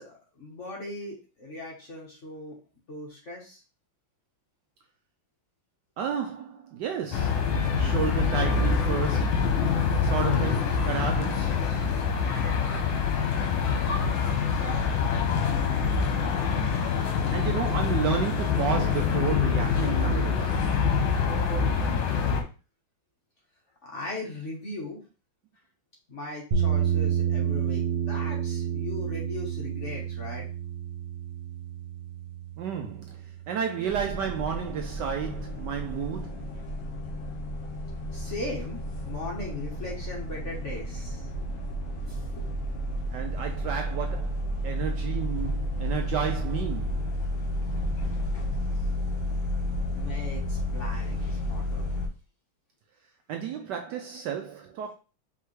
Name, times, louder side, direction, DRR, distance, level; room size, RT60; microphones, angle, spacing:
voice 1, 0.0-2.6 2.9-3.6 23.8-25.0 26.1-30.5 38.1-38.8 39.1-41.3 42.1-42.5 49.9-51.9, left 2 dB, 45° left, 1.2 m, -38 dB
voice 2, 6.0-7.5 7.8-9.5 10.0-11.7 17.3-20.6 32.6-36.5 43.1-47.1 53.3-54.9, right 7 dB, 75° right, 1.0 m, -32 dB
sound 1, 7.1-22.4, left 5 dB, 80° left, 1.6 m, -25 dB
sound 2, 26.5-34.6, right 8 dB, 55° right, 0.7 m, -30 dB
sound 3, 33.9-52.1, equal, 60° left, 1.9 m, -32 dB
4.8 x 3.3 x 3.1 m
omnidirectional pair, 2.2 m